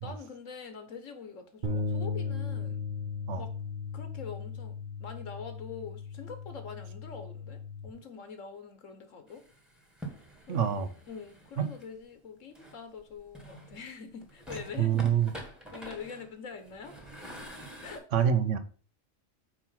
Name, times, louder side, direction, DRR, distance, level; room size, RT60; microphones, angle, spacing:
voice 1, 0.0-2.8 3.4-3.5 3.9-4.7 5.0-9.4 10.5-15.1 15.7-17.1 17.8-18.3, left 5 dB, 75° left, 1.5 m, -44 dB
sound 1, 1.6-7.9, left 4 dB, 40° right, 1.1 m, -36 dB
sound 2, 9.3-11.9 12.5-13.8 14.2-18.0, right 1 dB, ahead, 1.3 m, -46 dB
voice 2, 10.5-10.9 11.6-11.7 14.8-15.3 18.1-18.6, right 8 dB, 70° right, 1.1 m, -26 dB
5.6 x 4.5 x 5.7 m
omnidirectional pair, 1.3 m